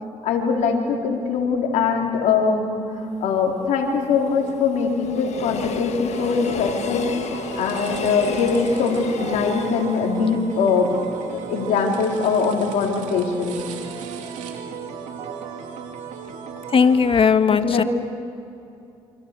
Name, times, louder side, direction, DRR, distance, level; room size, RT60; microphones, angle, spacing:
voice 1, 0.2-7.1 7.6-10.9 11.3-13.6 17.5-17.8, left 5 dB, 85° left, 1 dB, 4.0 m, -22 dB
Train, 3.0-12.1 12.5-12.6, left 7 dB, 65° left, 1.5 m, -33 dB
sound 1, 6.1-17.2, right 6 dB, 85° right, 2.7 m, -35 dB
voice 2, 16.7-17.8, left 6 dB, 45° left, 9 dB, 1.6 m, -17 dB
28.5 x 26.0 x 6.8 m, 2.6 s
supercardioid pair, 65°, 12 cm